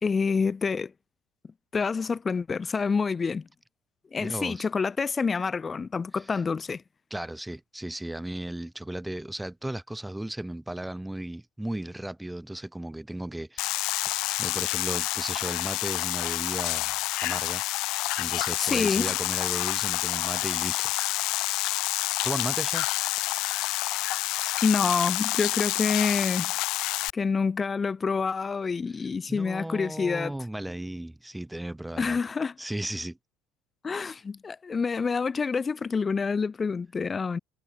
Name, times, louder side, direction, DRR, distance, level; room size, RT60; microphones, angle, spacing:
voice 1, 0.0-0.9 1.7-3.5 4.1-6.8 18.6-19.2 24.6-26.5 27.1-30.3 32.0-32.5 33.8-37.4, left 5 dB, 30° left, 3.7 m, -27 dB
voice 2, 4.2-4.7 6.1-6.4 7.1-20.9 22.2-22.9 28.9-32.2 32.6-33.2, right 1 dB, 5° right, 5.6 m, -36 dB
sound 1, 13.6-27.1, left 20 dB, 70° left, 2.2 m, -28 dB
hypercardioid pair, 70°, 0 cm